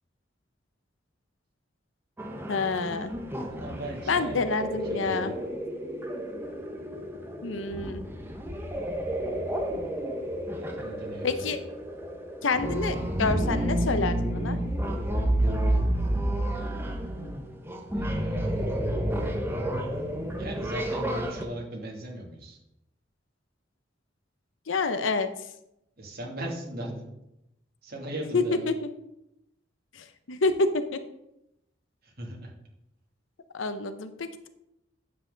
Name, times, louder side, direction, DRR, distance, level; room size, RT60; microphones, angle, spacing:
sound 1, 2.2-21.4, right 1 dB, 10° right, 1.1 m, -30 dB
voice 1, 2.5-3.1 4.1-5.3 7.4-8.0 11.2-11.6 12.4-14.6 24.7-25.3 28.3-28.7 29.9-31.0 33.5-34.5, left 3 dB, 85° left, 10 dB, 0.8 m, -28 dB
voice 2, 3.5-5.4 10.5-11.5 17.8-18.6 20.4-22.6 26.0-27.1 27.8-28.7 32.0-32.5, right 1 dB, 55° right, -2 dB, 2.7 m, -38 dB
9.6 x 7.7 x 3.9 m, 0.83 s
head